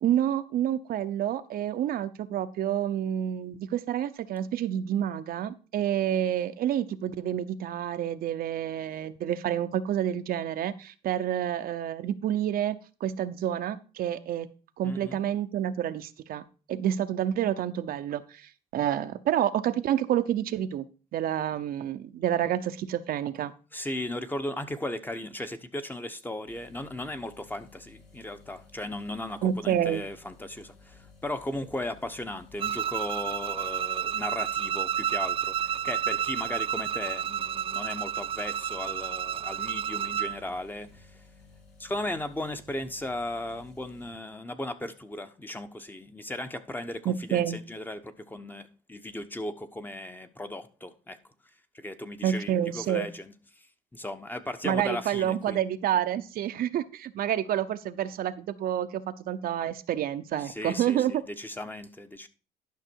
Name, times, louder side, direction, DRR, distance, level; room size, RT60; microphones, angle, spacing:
voice 1, 0.0-14.5 14.8-16.4 16.7-20.9 21.1-23.5 29.4-30.0 47.0-47.6 52.2-53.1 54.6-61.2, right 10 dB, 60° right, 0.8 m, -28 dB
voice 2, 14.8-15.2 23.7-41.1 41.8-51.2 51.7-53.3 53.9-55.6 60.4-62.3, left 1 dB, 10° left, 1.0 m, -36 dB
sound 1, 26.5-44.1, left 3 dB, 80° left, 3.2 m, -55 dB
Bowed string instrument, 32.6-40.4, right 9 dB, 35° right, 0.3 m, -30 dB
11.5 x 6.0 x 4.5 m
cardioid pair, 110°, 17 cm